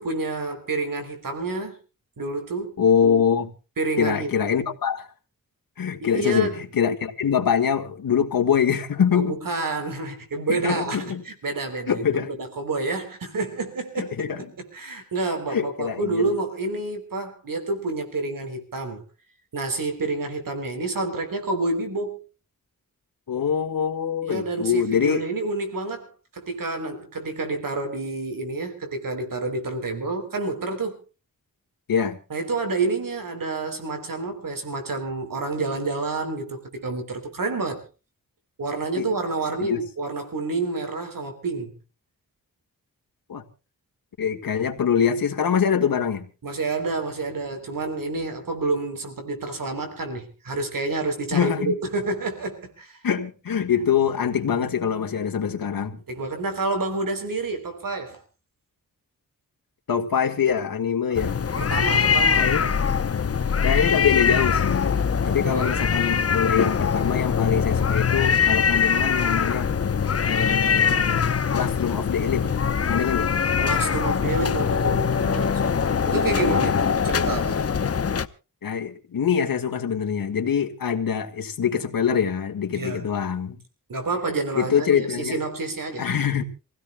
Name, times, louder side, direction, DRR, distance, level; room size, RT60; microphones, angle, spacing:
voice 1, 0.0-1.8 2.2-2.8 3.8-4.3 6.0-6.6 9.1-14.3 14.6-19.0 19.5-22.2 24.2-31.0 32.3-37.8 38.6-41.7 46.4-53.0 56.1-58.2 61.1-61.2 61.6-62.5 65.3-65.8 73.6-75.8 76.0-77.6 82.7-83.1 83.9-86.1, right 3 dB, 70° right, 3.6 m, -29 dB
voice 2, 2.8-3.5 4.0-5.1 5.8-9.4 10.5-11.2 11.9-12.3 14.0-14.4 15.5-16.2 23.3-25.2 31.9-32.2 39.0-39.1 39.6-39.8 43.3-43.4 44.2-46.3 51.3-51.8 53.0-56.0 59.9-61.4 62.4-62.7 63.6-69.7 70.2-72.5 72.9-73.3 78.6-83.6 84.5-85.4 86.0-86.4, left 7 dB, 80° left, 1.9 m, -24 dB
sound 1, 61.2-78.3, left 6 dB, 45° left, 0.8 m, -22 dB
27.0 x 16.5 x 2.2 m
wide cardioid pair, 95°, 34 cm